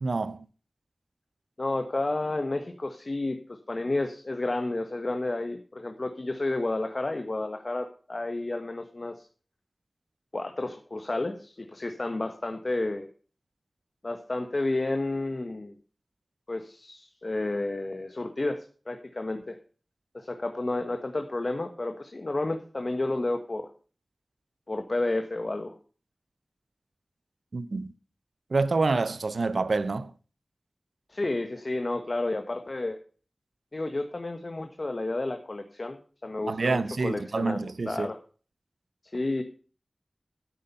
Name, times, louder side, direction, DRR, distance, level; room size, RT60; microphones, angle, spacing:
voice 1, 0.0-0.4 27.5-27.9 28.5-30.1 36.5-38.1, right 3 dB, 85° right, 0.7 m, -27 dB
voice 2, 1.6-9.3 10.3-13.1 14.0-15.7 16.5-19.6 20.1-23.7 24.7-25.7 31.1-33.0 33.7-38.2 39.1-39.4, left 2 dB, 50° left, 1.4 m, -31 dB
11.5 x 8.5 x 5.5 m
wide cardioid pair, 70°, 0 cm